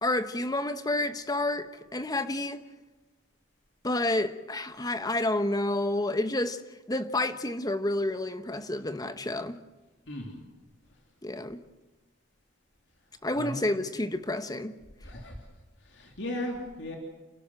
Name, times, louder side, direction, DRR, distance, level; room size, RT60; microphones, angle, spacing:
voice 1, 0.0-2.6 3.8-6.6 6.9-9.6 11.2-11.6 13.2-14.8, left 1 dB, 20° left, 1.1 m, -29 dB
voice 2, 10.1-10.4 13.3-13.8 15.0-15.4 15.8-17.0, left 1 dB, 65° left, 3.2 m, -37 dB
29.5 x 12.0 x 7.9 m
head